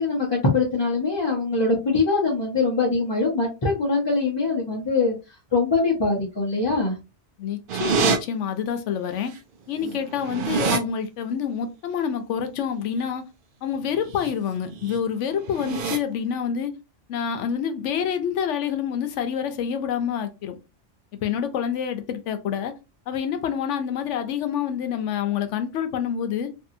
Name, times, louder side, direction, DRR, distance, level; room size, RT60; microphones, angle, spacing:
voice 1, 0.0-5.2 5.5-7.0 9.8-10.0, left 3 dB, 30° left, 0.6 m, -23 dB
voice 2, 7.4-9.3 9.7-13.2 13.6-16.7 17.1-20.6 21.2-22.7 23.1-26.5, left 8 dB, 85° left, 0.9 m, -27 dB
sound 1, 7.7-8.2 9.4-9.5 9.7-10.8 14.0-14.3 14.7-15.0 15.4-16.0, right 5 dB, 60° right, 0.6 m, -26 dB
2.6 x 2.6 x 2.5 m
omnidirectional pair, 1.2 m